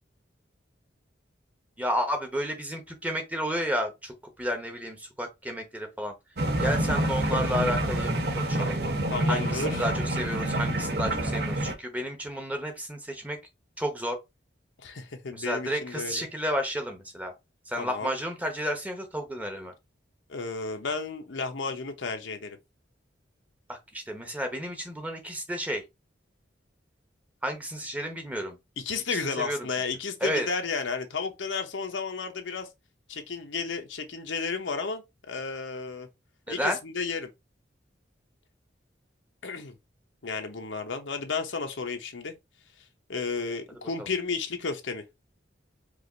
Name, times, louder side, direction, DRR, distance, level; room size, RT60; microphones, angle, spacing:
voice 1, 1.8-6.1 6.6-8.8 9.3-13.4 13.8-14.2 15.3-17.3 17.7-19.7 23.7-25.8 27.4-28.6 29.1-29.7 30.2-30.5 36.5-36.8 44.0-44.1, equal, 10° right, 0.9 m, -32 dB
sound 1, 6.4-11.7, right 1 dB, 55° right, 0.9 m, -27 dB
voice 2, 9.1-9.9 14.8-16.2 17.8-18.1 20.3-22.6 28.8-32.7 33.1-36.1 36.5-37.3 39.4-39.7 40.2-42.3 43.1-45.0, left 4 dB, 80° left, 0.9 m, -33 dB
4.9 x 2.6 x 3.8 m
head